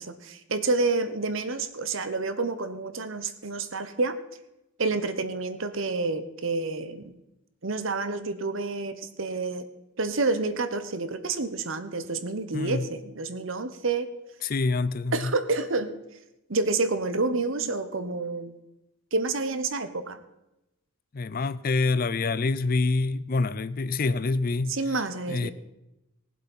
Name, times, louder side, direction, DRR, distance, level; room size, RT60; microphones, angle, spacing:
voice 1, 0.0-4.2 4.8-7.2 7.6-9.7 10.0-14.1 15.1-16.0 16.5-18.5 19.1-20.2 24.7-25.5, right 3 dB, 65° right, 1.1 m, -29 dB
voice 2, 12.5-12.9 14.4-15.3 21.1-24.8 25.3-25.5, left 3 dB, 40° left, 0.4 m, -26 dB
18.5 x 7.6 x 5.5 m
head